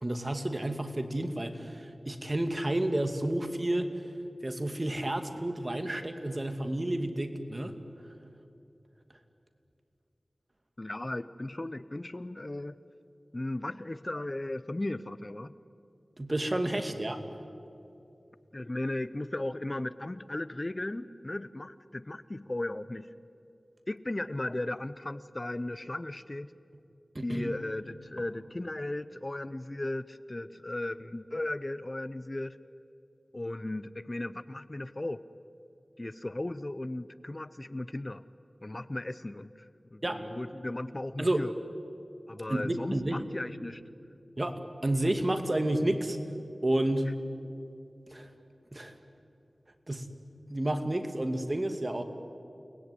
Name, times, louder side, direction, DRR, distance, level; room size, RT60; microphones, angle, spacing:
voice 1, 0.0-4.0 4.4-7.7 16.2-17.2 27.1-27.5 40.0-40.3 41.2-41.4 42.5-43.3 44.4-46.2 46.6-47.1 48.1-48.3 48.7-49.0 49.9-50.1 50.5-52.0, right 1 dB, 35° right, 7 dB, 2.4 m, -30 dB
voice 2, 10.8-12.8 13.3-15.5 18.5-23.1 23.9-26.5 27.2-32.6 33.3-35.2 36.0-38.2 38.6-41.5 42.3-43.8, left 1 dB, 35° left, 15 dB, 0.7 m, -36 dB
29.5 x 20.0 x 9.8 m, 2.6 s
wide cardioid pair, 50°, 0 cm